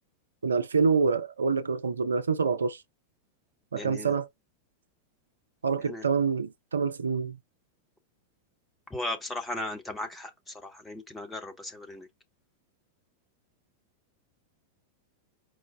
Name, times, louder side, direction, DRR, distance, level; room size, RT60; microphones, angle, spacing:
voice 1, 0.4-2.8 3.7-4.3 5.6-7.4, right 5 dB, 75° right, 0.4 m, -26 dB
voice 2, 3.7-4.1 5.8-6.1 8.9-12.1, left 1 dB, 10° left, 1.0 m, -37 dB
4.7 x 2.1 x 4.4 m
figure-of-eight pair, 90°, 0 cm